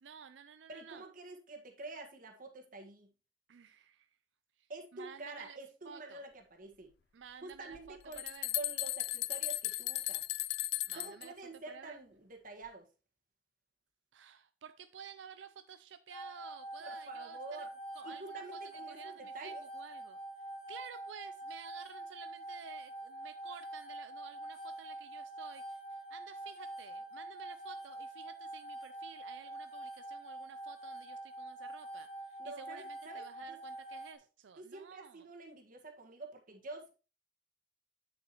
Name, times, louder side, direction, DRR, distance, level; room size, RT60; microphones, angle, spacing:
voice 1, 0.0-1.0 3.5-4.1 4.6-4.7 4.9-5.6 5.8-6.2 7.1-8.5 10.9-11.3 11.7-12.0 14.1-17.7 17.9-18.6 18.9-20.2 20.7-35.3, right 7 dB, 85° right, 0.5 m, -52 dB
voice 2, 0.7-3.1 4.7-6.9 7.4-8.2 8.5-10.2 10.9-12.9 16.8-17.7 18.0-19.6 32.4-33.6 34.6-36.9, right 2 dB, 50° right, 1.7 m, -48 dB
sound 1, 7.7-7.8 8.1-11.3, left 17 dB, 65° left, 0.4 m, -36 dB
sound 2, 16.1-34.1, right 1 dB, 35° left, 1.1 m, -46 dB
8.6 x 7.2 x 3.0 m
head